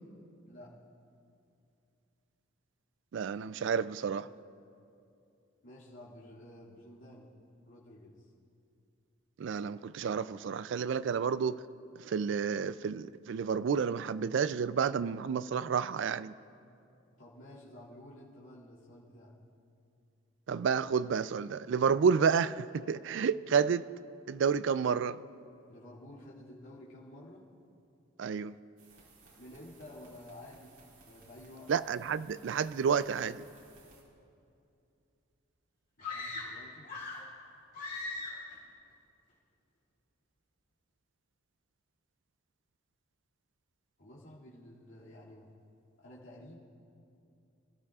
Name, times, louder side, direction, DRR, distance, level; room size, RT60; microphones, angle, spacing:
voice 1, 3.1-4.3 9.4-11.6 12.0-16.3 20.5-23.9 24.3-25.2 28.2-28.6 31.7-33.4, right 6 dB, 65° right, 0.3 m, -30 dB
voice 2, 5.6-7.3 7.6-8.2 17.1-19.3 25.7-27.4 29.3-30.8 31.0-31.7 36.0-36.9 44.0-45.5 46.0-46.6, left 1 dB, 70° left, 2.4 m, -51 dB
sound 1, 28.8-34.0, right 3 dB, 90° right, 4.1 m, -60 dB
sound 2, 36.0-37.3 37.7-38.5, left 3 dB, 50° left, 3.8 m, -40 dB
25.5 x 14.0 x 2.4 m
head